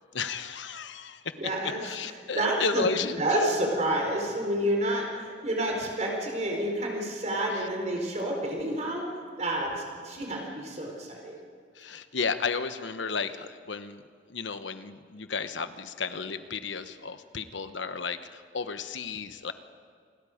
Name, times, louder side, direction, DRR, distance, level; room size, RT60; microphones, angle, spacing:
voice 1, 0.1-1.5 1.8-3.4 7.5-7.7 11.7-19.5, left 5 dB, 85° left, 10 dB, 1.1 m, -33 dB
voice 2, 1.4-1.8 2.3-2.9 3.2-9.1 9.4-11.4, right 1 dB, 40° right, 0 dB, 4.3 m, -29 dB
28.0 x 21.0 x 5.1 m, 2.1 s
head